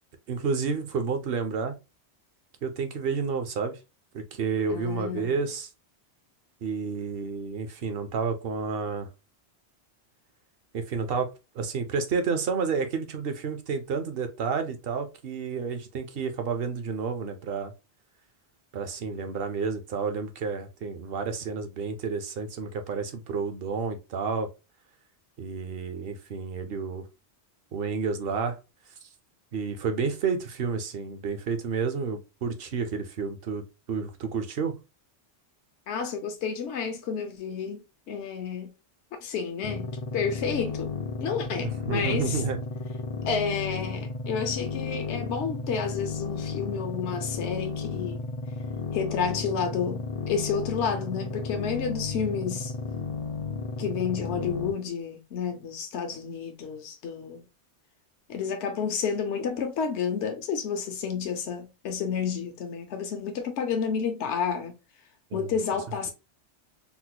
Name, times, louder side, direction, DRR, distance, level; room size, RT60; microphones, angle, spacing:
voice 1, 0.3-1.7 2.6-3.8 4.1-5.7 6.6-9.1 10.7-17.7 18.7-24.5 25.4-27.0 27.7-28.6 29.5-34.8 41.6-42.6 65.3-65.5, right 5 dB, 60° right, 0.8 m, -30 dB
voice 2, 4.7-5.4 35.9-38.7 39.2-40.9 41.2-42.4 43.2-48.2 48.9-52.7 53.8-57.4 58.3-64.7 65.3-66.1, left 6 dB, 80° left, 0.9 m, -30 dB
sound 1, 39.6-54.7, left 4 dB, 50° left, 0.4 m, -33 dB
3.8 x 2.1 x 2.8 m
omnidirectional pair, 1.2 m